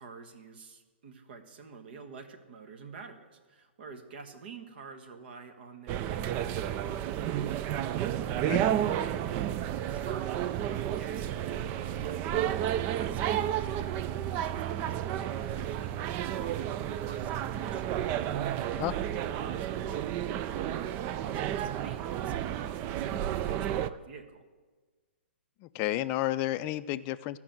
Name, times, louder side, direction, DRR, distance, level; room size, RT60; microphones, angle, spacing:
voice 1, 0.0-24.5, right 5 dB, 55° right, 7 dB, 1.4 m, -49 dB
sound 1, 5.9-23.9, right 11 dB, 30° right, 0.4 m, -31 dB
voice 2, 25.6-27.4, left 15 dB, 30° left, 13 dB, 0.4 m, -31 dB
13.5 x 5.9 x 7.8 m, 1.4 s
hypercardioid pair, 130°, 6 cm